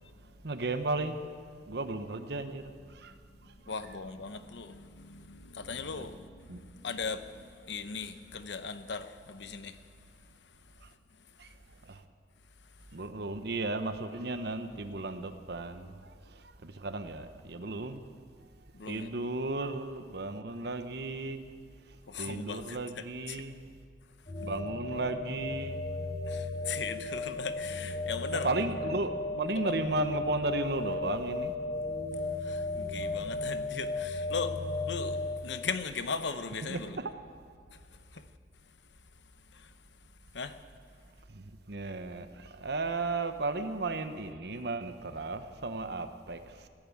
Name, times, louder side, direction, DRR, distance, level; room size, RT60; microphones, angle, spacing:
voice 1, 0.4-1.2 1.7-3.1 6.0-6.1 6.5-6.6 11.4-11.5 11.9-12.0 12.9-15.9 16.3-18.0 18.8-21.4 22.2-23.7 24.4-25.9 28.3-31.5 36.6-37.1 41.3-46.7, right 2 dB, 65° right, 1.0 m, -35 dB
voice 2, 3.7-9.8 18.8-19.1 22.1-23.4 26.3-28.5 29.6-29.7 32.5-34.6 34.9-37.0 40.3-40.5, left 5 dB, 75° left, 0.9 m, -38 dB
sound 1, 24.3-35.3, left 2 dB, 35° left, 3.2 m, -35 dB
15.5 x 10.5 x 8.6 m
head